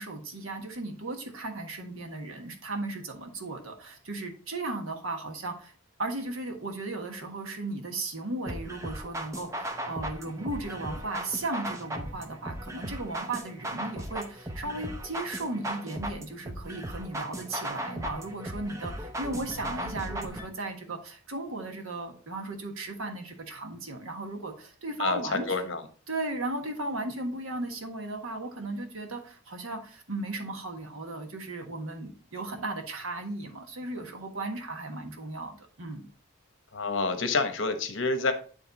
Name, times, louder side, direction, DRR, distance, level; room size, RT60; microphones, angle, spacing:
voice 1, 0.0-5.7 6.0-25.6 26.1-36.1, right 2 dB, 90° right, 4 dB, 1.4 m, -36 dB
sound 1, 8.5-20.5, right 1 dB, 15° right, 0.7 m, -37 dB
voice 2, 25.0-25.8 36.7-38.3, left 3 dB, 65° left, 8 dB, 1.0 m, -28 dB
9.2 x 3.3 x 4.0 m, 0.41 s
head